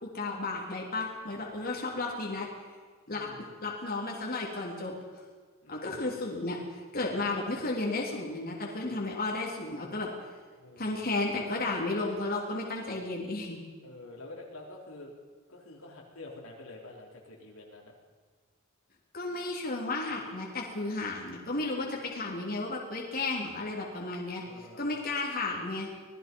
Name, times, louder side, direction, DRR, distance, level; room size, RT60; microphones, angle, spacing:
voice 1, 0.0-2.5 3.1-4.9 5.7-6.6 6.9-10.1 10.8-13.6 19.1-25.9, left 2 dB, 45° left, -2 dB, 3.4 m, -33 dB
voice 2, 3.1-3.5 5.6-6.1 10.6-11.2 13.8-15.1 15.5-17.9 24.5-25.0, left 2 dB, 80° left, -1 dB, 4.0 m, -48 dB
26.0 x 19.0 x 5.4 m, 1.5 s
head